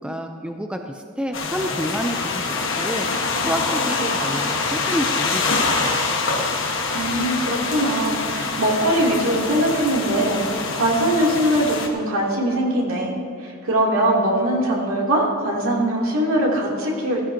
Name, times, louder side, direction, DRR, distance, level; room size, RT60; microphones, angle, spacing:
voice 1, 0.0-2.4 2.8-3.1 3.5-6.0, equal, 5° right, 4 dB, 0.5 m, -29 dB
sound 1, 1.3-11.9, left 3 dB, 60° left, 1.5 m, -25 dB
voice 2, 6.9-10.4 10.7-13.1 13.4-17.3, right 1 dB, 70° right, -3 dB, 3.0 m, -21 dB
15.5 x 15.5 x 2.9 m, 2.5 s
head